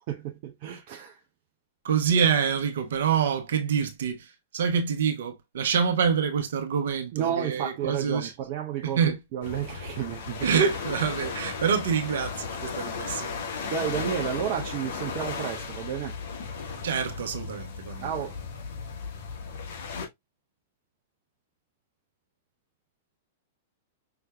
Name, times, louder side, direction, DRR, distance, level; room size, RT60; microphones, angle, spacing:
voice 1, 0.1-1.2 7.1-10.5 13.6-16.2 18.0-18.4, right 9 dB, 45° right, 0.7 m, -31 dB
voice 2, 1.8-8.3 8.8-9.2 10.4-13.5 16.8-18.2, right 7 dB, 65° right, 1.1 m, -26 dB
sound 1, 9.4-20.1, left 5 dB, 60° left, 1.3 m, -35 dB
5.9 x 3.3 x 2.2 m
figure-of-eight pair, 100°, 0 cm